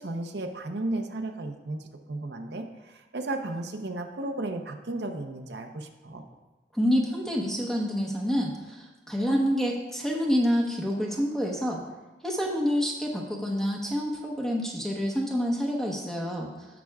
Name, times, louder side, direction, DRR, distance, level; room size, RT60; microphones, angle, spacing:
voice 1, 0.0-6.2, right 2 dB, 80° right, 4 dB, 0.8 m, -34 dB
voice 2, 6.7-11.8 12.2-16.7, equal, ahead, -1 dB, 1.1 m, -27 dB
16.5 x 6.0 x 2.4 m, 1.1 s
head